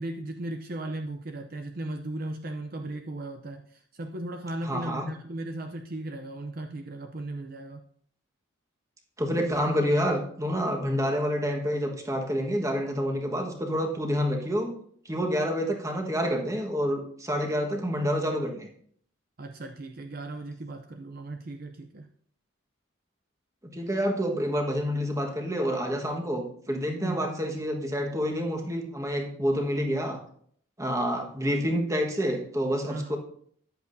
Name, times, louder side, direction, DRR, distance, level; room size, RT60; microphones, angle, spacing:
voice 1, 0.0-7.8 19.4-22.1 26.9-27.3 32.9-33.2, right 1 dB, 45° right, 6 dB, 0.5 m, -36 dB
voice 2, 4.6-5.1 9.2-14.7 15.0-18.7 23.7-30.2 30.8-33.2, equal, 15° right, 2 dB, 1.4 m, -28 dB
14.0 x 10.5 x 2.6 m, 0.62 s
head